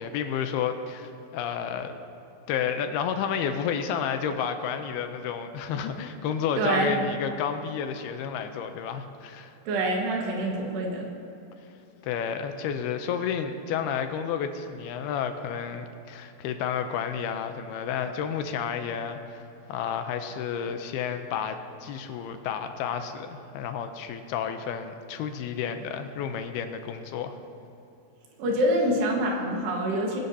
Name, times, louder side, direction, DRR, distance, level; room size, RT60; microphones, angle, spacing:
voice 1, 0.0-1.9 2.5-9.5 12.0-27.4, left 7 dB, 85° left, 7 dB, 2.5 m, -31 dB
voice 2, 6.6-6.9 9.7-11.1 28.4-30.2, right 1 dB, 80° right, -1 dB, 3.7 m, -26 dB
22.0 x 10.5 x 2.8 m, 2.9 s
omnidirectional pair, 4.8 m